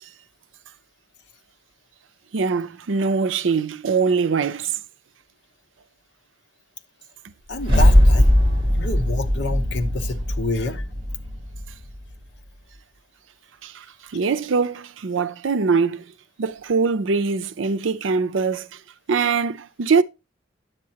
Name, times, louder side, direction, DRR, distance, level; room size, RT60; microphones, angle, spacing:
voice 1, 2.3-4.7 13.6-13.8 14.1-16.0 16.4-18.7 19.1-20.0, right 5 dB, 80° right, 0.5 m, -22 dB
voice 2, 7.5-8.3 8.7-10.8, left 2 dB, 65° left, 1.0 m, -28 dB
sound 1, 7.5-11.9, left 1 dB, 25° right, 2.9 m, -19 dB
9.2 x 7.5 x 2.8 m
head